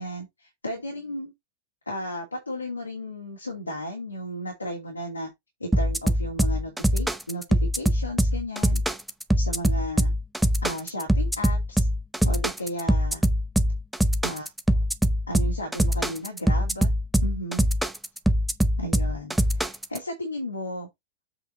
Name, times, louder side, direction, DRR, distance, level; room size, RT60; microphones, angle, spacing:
voice 1, 0.0-1.3 1.9-5.3 5.6-8.8 9.4-10.1 10.6-11.9 12.2-13.2 14.2-14.5 15.3-16.9 17.2-17.7 18.8-20.9, left 1 dB, 80° left, 2.5 m, -34 dB
sound 1, 5.7-20.0, equal, 5° right, 0.8 m, -23 dB
8.1 x 4.5 x 4.2 m
figure-of-eight pair, 90°, 0 cm